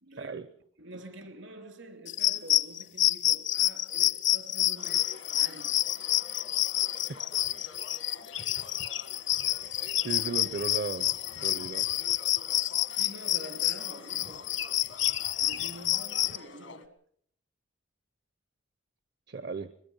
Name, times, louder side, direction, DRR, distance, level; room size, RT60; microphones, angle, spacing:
voice 1, 0.0-0.4 0.8-5.8 12.9-14.5 15.4-17.0, right 1 dB, 75° right, 3.0 m, -47 dB
sound 1, 2.1-16.4, left 14 dB, 70° left, 0.8 m, -28 dB
sound 2, 4.8-16.9, left 4 dB, 90° left, 1.7 m, -49 dB
voice 2, 10.0-11.1 11.4-11.8 19.3-19.7, right 4 dB, 55° right, 0.7 m, -35 dB
22.0 x 22.0 x 5.6 m
head